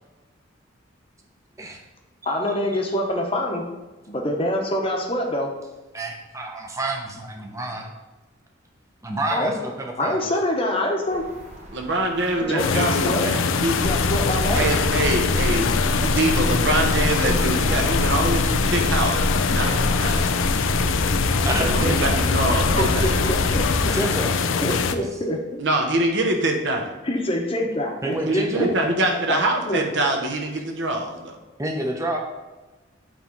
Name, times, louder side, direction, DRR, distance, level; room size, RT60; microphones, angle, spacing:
voice 1, 2.2-3.6 4.1-5.5 9.3-9.5 10.0-11.2 12.4-13.3 13.8-14.7 22.8-23.9 24.6-25.6 27.0-28.7 29.3-29.4 29.7-29.8, left 1 dB, 30° left, 1 dB, 0.9 m, -25 dB
voice 2, 5.9-7.9 9.0-10.3 21.4-22.2 23.9-24.5 28.0-28.7 31.6-32.2, right 1 dB, 15° right, 2 dB, 0.7 m, -28 dB
sound 1, 11.1-24.4, right 1 dB, 35° right, 1.0 m, -44 dB
voice 3, 11.7-13.8 14.6-20.3 21.6-23.1 25.6-26.9 28.3-31.4, right 1 dB, 65° right, 2 dB, 1.0 m, -24 dB
sound 2, 12.6-24.9, left 5 dB, 85° left, 0.4 m, -23 dB
sound 3, 13.8-24.0, left 1 dB, 65° left, 1.0 m, -26 dB
8.7 x 3.3 x 3.9 m, 1.2 s
head